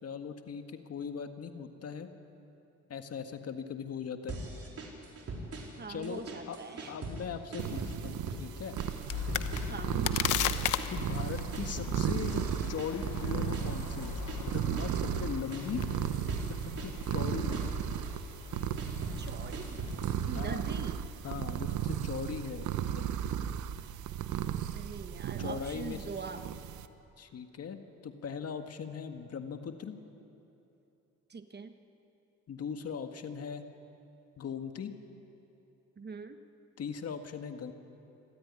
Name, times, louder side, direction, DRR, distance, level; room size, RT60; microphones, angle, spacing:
voice 1, 0.0-2.1 2.9-4.4 5.9-6.6 6.9-8.8 10.9-15.8 16.4-17.7 20.3-20.7 21.2-23.1 25.4-26.1 27.2-30.0 32.5-33.6 34.4-34.9 36.8-37.7, left 7 dB, 55° left, 6 dB, 1.8 m, -39 dB
sound 1, 4.3-5.8 6.0-7.3 7.5-8.5 8.8-10.2 10.5-15.2 15.5-16.5 16.8-18.1 18.5-20.2, right 2 dB, 50° right, 4.4 m, -41 dB
voice 2, 5.8-6.9 9.7-10.4 19.2-19.7 20.3-21.0 24.7-26.4 31.3-31.7 36.0-36.4, right 4 dB, 35° right, 8 dB, 1.4 m, -43 dB
sound 2, 7.6-26.9, right 10 dB, 75° right, 1.0 m, -35 dB
sound 3, 9.1-21.2, left 11 dB, 80° left, 1.0 m, -38 dB
26.0 x 14.0 x 9.7 m, 2.9 s
cardioid pair, 90°, 30 cm